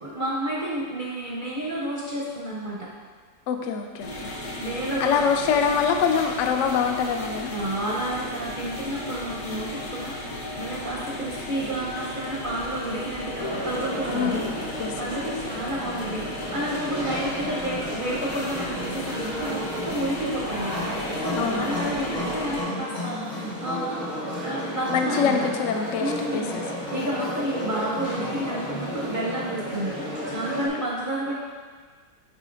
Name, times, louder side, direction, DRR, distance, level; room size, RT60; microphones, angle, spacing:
voice 1, 0.0-2.9 4.6-5.4 7.5-14.5 14.9-20.7 21.2-24.1 24.3-25.4 26.0-31.3, right 1 dB, 55° right, -4 dB, 0.5 m, -30 dB
voice 2, 3.5-4.3 5.0-7.5 14.1-14.9 21.4-21.8 24.9-26.6, left 6 dB, 85° left, 5 dB, 0.6 m, -25 dB
sound 1, 4.0-22.6, left 1 dB, 65° left, 1.7 m, -35 dB
sound 2, 13.4-30.7, equal, 35° left, 0.8 m, -32 dB
9.7 x 3.8 x 2.5 m, 1.5 s
omnidirectional pair, 1.9 m